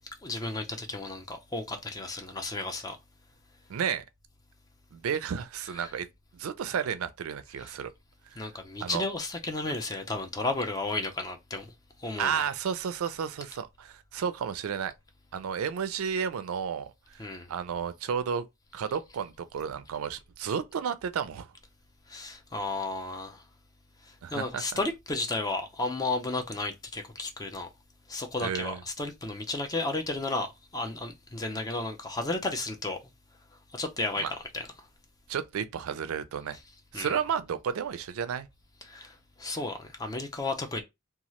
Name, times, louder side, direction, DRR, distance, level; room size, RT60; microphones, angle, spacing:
voice 1, 0.2-3.0 5.7-5.9 7.6-7.8 8.4-11.7 12.0-12.5 17.2-17.5 22.1-23.5 24.0-27.7 28.1-33.0 33.7-34.2 34.5-34.9 36.9-37.2 38.8-40.8, left 2 dB, 15° left, 0.4 m, -33 dB
voice 2, 3.7-4.0 4.9-6.1 6.3-7.9 8.3-8.4 8.8-9.0 12.2-14.9 15.3-18.4 18.7-21.5 24.2-24.6 28.4-28.8 34.2-34.3 35.3-36.6 36.9-38.5, right 7 dB, 80° right, 0.4 m, -32 dB
2.8 x 2.3 x 3.0 m
head